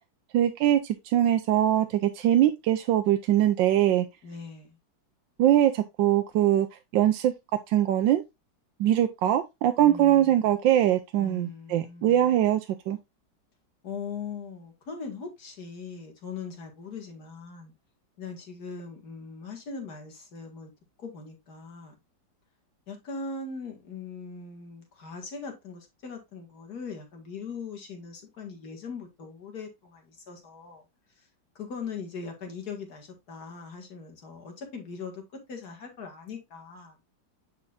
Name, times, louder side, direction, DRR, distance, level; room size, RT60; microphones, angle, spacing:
voice 1, 0.3-4.1 5.4-6.7 6.9-7.3 7.7-8.2 8.8-12.6 12.9-13.0, right 12 dB, 80° right, 1.3 m, -22 dB
voice 2, 4.2-4.8 9.8-10.3 11.2-12.4 13.8-17.7 18.2-20.7 21.0-21.9 22.9-30.8 31.6-35.2 35.5-37.0, left 5 dB, 55° left, 2.4 m, -40 dB
9.7 x 4.5 x 2.4 m
omnidirectional pair, 2.0 m